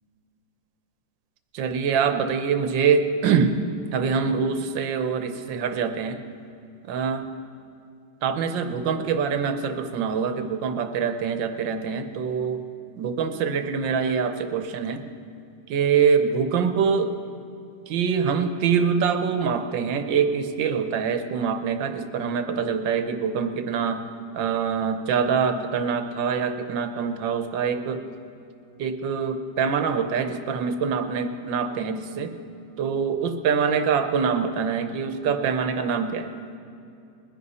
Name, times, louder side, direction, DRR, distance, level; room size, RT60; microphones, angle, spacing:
voice 1, 1.5-3.6 3.9-6.2 6.9-7.3 8.2-12.6 13.0-15.0 15.7-17.1 17.9-24.0 24.3-28.0 28.8-32.3 32.8-36.3, right 6 dB, 85° right, 8 dB, 1.6 m, -24 dB
21.0 x 10.5 x 4.2 m, 2.6 s
omnidirectional pair, 2.0 m